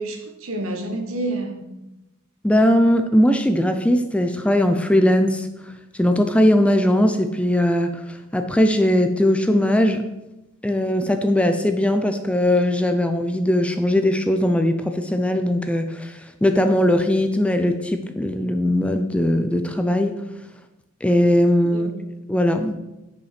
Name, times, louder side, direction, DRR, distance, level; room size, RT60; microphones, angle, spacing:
voice 1, 0.0-1.7 21.7-22.1, right 2 dB, 70° right, 1.3 m, -29 dB
voice 2, 2.4-5.5 5.9-10.0 10.6-20.2 21.0-21.9 22.3-22.7, left 1 dB, 5° left, 0.4 m, -19 dB
9.4 x 5.3 x 5.0 m
head